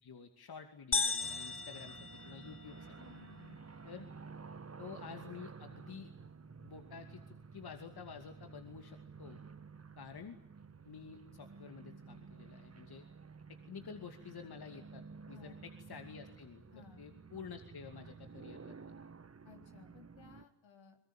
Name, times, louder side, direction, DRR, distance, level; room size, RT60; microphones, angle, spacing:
voice 1, 0.0-2.9 3.8-4.1 4.8-6.1 6.6-9.4 10.0-10.4 10.8-13.1 13.5-18.8, left 6 dB, 50° left, 6 dB, 2.6 m, -50 dB
sound 1, 0.9-2.9, left 4 dB, 25° left, 1.1 m, -36 dB
sound 2, 1.2-20.4, right 5 dB, 30° right, 1.7 m, -53 dB
voice 2, 3.0-3.7 15.3-15.6 16.7-17.0 19.5-21.0, left 5 dB, 65° left, 4 dB, 3.7 m, -58 dB
24.0 x 22.5 x 8.9 m, 0.77 s
hypercardioid pair, 40°, 49 cm